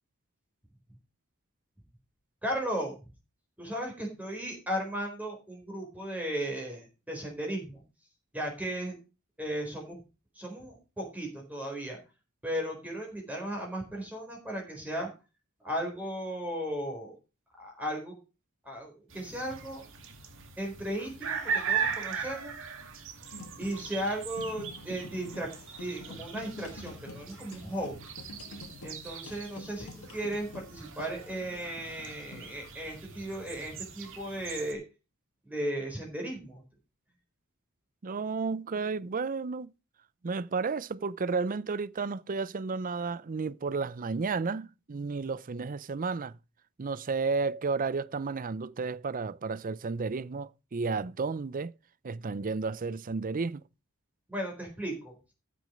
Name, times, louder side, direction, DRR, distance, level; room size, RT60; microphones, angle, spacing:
voice 1, 2.4-3.0 3.6-7.8 8.3-9.0 9.4-10.0 10.3-12.0 12.4-15.1 15.6-17.2 17.6-18.2 18.6-19.8 20.6-22.5 23.6-25.5 25.8-28.0 28.8-34.8 35.5-36.6 54.3-55.1, right 1 dB, 5° right, 4.2 m, -36 dB
sound 1, 19.1-34.7, right 6 dB, 60° right, 2.1 m, -39 dB
sound 2, 23.3-33.4, left 2 dB, 75° left, 1.8 m, -48 dB
voice 2, 38.0-39.7 40.2-46.4 46.8-51.7 52.0-53.6, right 4 dB, 40° right, 0.5 m, -32 dB
14.0 x 6.2 x 5.2 m
head